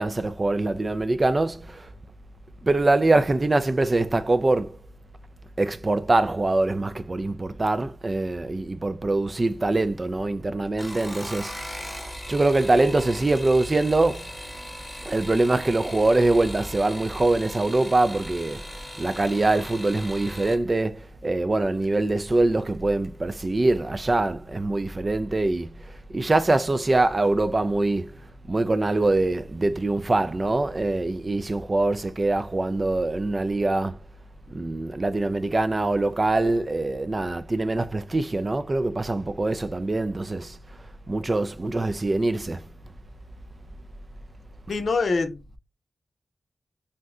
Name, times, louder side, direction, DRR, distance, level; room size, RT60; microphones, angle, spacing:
voice 1, 0.0-1.9 2.6-4.8 5.6-14.3 15.1-18.6 19.0-28.1 28.5-34.0 34.5-40.6 41.1-42.7, right 2 dB, 40° right, 0.4 m, -24 dB
sound 1, 10.7-20.6 21.8-22.3 22.7-23.2 23.4-23.5, equal, 10° left, 1.0 m, -39 dB
voice 2, 44.7-45.6, left 4 dB, 75° left, 0.6 m, -25 dB
2.6 x 2.1 x 3.6 m
cardioid pair, 45°, 0 cm